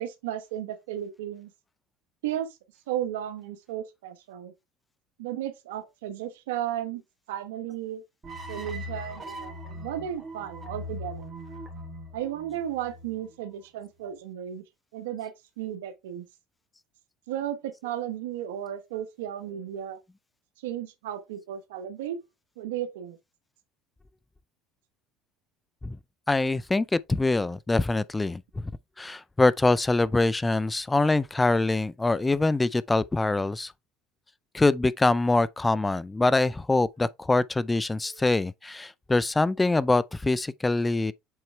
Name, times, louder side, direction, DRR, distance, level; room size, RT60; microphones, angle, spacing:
voice 1, 0.0-1.5 2.2-2.5 2.9-4.5 5.2-7.0 7.3-8.0 8.5-11.3 12.1-14.6 14.9-16.2 17.3-20.0 20.6-22.2 22.6-23.2 38.1-38.3, right 11 dB, 90° right, 1.1 m, -34 dB
sound 1, 8.2-13.5, left 1 dB, 30° right, 2.6 m, -40 dB
voice 2, 26.3-28.6 29.0-33.7 34.5-41.1, left 2 dB, 15° left, 0.5 m, -24 dB
7.9 x 4.4 x 3.2 m
supercardioid pair, 90°, 0 cm